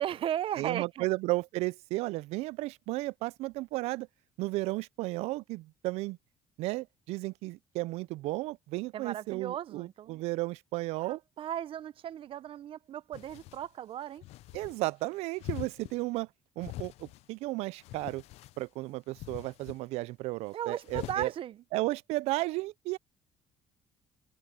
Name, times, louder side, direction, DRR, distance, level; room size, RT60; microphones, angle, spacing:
voice 1, 0.0-1.1 8.9-10.2 11.1-14.2 20.5-21.6, right 11 dB, 60° right, 0.7 m, -36 dB
voice 2, 0.6-4.1 4.4-6.2 6.6-11.2 14.5-16.3 16.6-18.2 18.6-21.3 21.7-23.0, right 20 dB, 90° right, 0.4 m, -34 dB
sound 1, 13.1-13.7 14.2-14.8 15.4-16.0 16.6-17.3 17.7-18.6 19.1-19.8 20.8-21.3, left 17 dB, 80° left, 0.5 m, -43 dB
cardioid pair, 100°, 11 cm